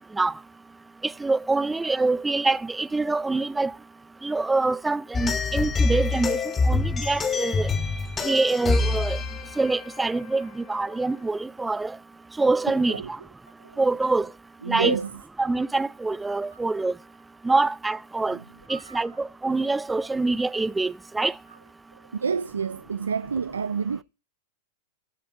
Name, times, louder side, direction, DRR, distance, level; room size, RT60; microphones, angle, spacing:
voice 1, 1.0-3.7 4.2-6.4 6.7-7.7 8.2-9.2 9.6-11.9 12.4-13.0 13.8-14.3 14.7-15.0 15.4-16.9 17.4-18.4 18.7-21.3, right 3 dB, 10° right, 0.6 m, -25 dB
sound 1, 5.1-10.9, left 3 dB, 20° left, 2.9 m, -26 dB
voice 2, 14.6-15.1 18.7-19.0 22.2-24.0, right 6 dB, 90° right, 0.5 m, -28 dB
20.0 x 6.9 x 4.6 m
hypercardioid pair, 105°, 0 cm